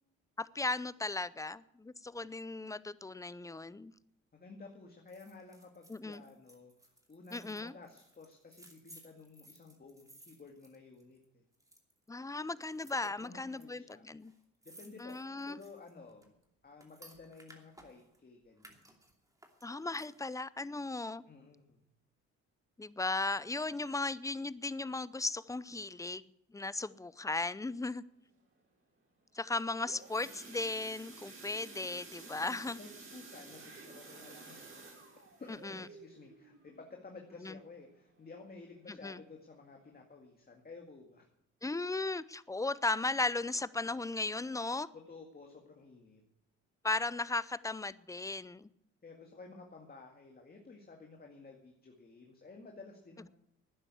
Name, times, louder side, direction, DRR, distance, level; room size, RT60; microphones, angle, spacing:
voice 1, 0.4-3.9 5.9-6.2 7.3-7.7 12.1-14.3 15.0-15.6 19.6-21.2 22.8-26.2 26.5-28.0 29.3-32.8 35.5-35.9 37.4-37.6 38.9-39.2 41.6-44.9 46.8-48.7, left 3 dB, 10° left, 0.5 m, -36 dB
voice 2, 4.3-11.4 13.0-14.3 14.6-16.3 16.6-18.8 21.2-21.8 32.4-34.7 35.4-41.3 44.9-46.2 49.0-53.3, left 3 dB, 30° left, 2.1 m, -53 dB
sound 1, 5.1-11.3 11.5-12.1 12.6-13.7 13.9-14.0 14.2-18.2 18.6-20.4 20.7-20.8, right 1 dB, 10° right, 2.7 m, -60 dB
sound 2, 29.5-38.2 38.6-38.9 39.2-39.3 39.7-39.8, right 3 dB, 45° right, 4.9 m, -52 dB
12.0 x 9.9 x 8.4 m
cardioid pair, 90°, 30 cm